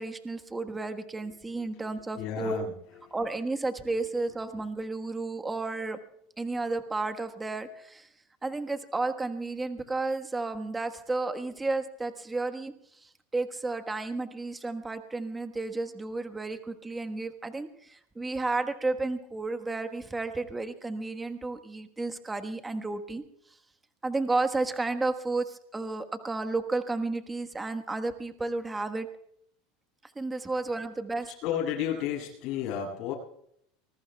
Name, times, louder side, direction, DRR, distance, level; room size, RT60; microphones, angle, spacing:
voice 1, 0.0-2.6 3.1-6.0 6.4-8.1 8.4-12.7 13.0-23.2 24.0-29.1 30.1-31.3, right 3 dB, 15° right, 7 dB, 1.4 m, -32 dB
voice 2, 2.1-2.7 3.1-3.2 31.4-33.1, left 9 dB, 55° left, -2 dB, 7.5 m, -32 dB
24.5 x 21.0 x 2.3 m, 0.70 s
supercardioid pair, 115°, 0 cm